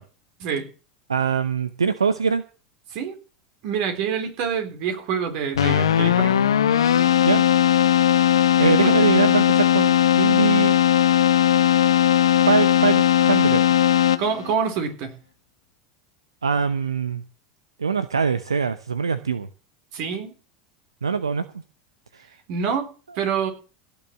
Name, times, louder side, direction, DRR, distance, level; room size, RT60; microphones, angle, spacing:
voice 1, 1.1-2.4 7.3-7.4 8.6-10.8 12.4-13.7 16.4-17.2 17.8-19.5 21.0-21.5, right 6 dB, 90° right, 13 dB, 0.8 m, -23 dB
voice 2, 3.6-6.4 8.6-8.7 14.2-15.1 19.9-20.3 22.5-22.9 23.2-23.5, right 6 dB, 60° right, 7 dB, 4.0 m, -26 dB
Keyboard (musical), 5.6-14.5, left 11 dB, 80° left, 0.9 m, -18 dB
17.0 x 7.1 x 7.6 m, 0.36 s
hypercardioid pair, 85°, 3 cm